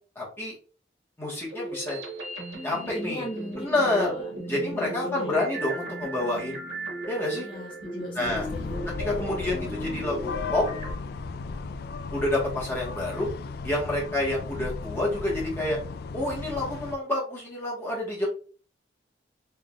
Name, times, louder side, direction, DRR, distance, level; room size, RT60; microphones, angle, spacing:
voice 1, 0.1-0.5 1.2-2.0 2.6-3.2 3.5-4.1 4.5-6.6 7.1-7.5 8.1-8.5 9.0-10.6 12.1-13.3 13.6-15.8 16.1-18.3, left 1 dB, 15° left, -5 dB, 1.3 m, -28 dB
sound 1, 1.5-10.9, right 1 dB, 70° right, 1.5 m, -36 dB
voice 2, 2.9-5.4 7.4-8.8, left 2 dB, 30° left, -3 dB, 1.0 m, -38 dB
sound 2, 8.2-17.0, left 4 dB, 60° left, 0.3 m, -36 dB
3.7 x 3.4 x 2.4 m, 0.38 s
head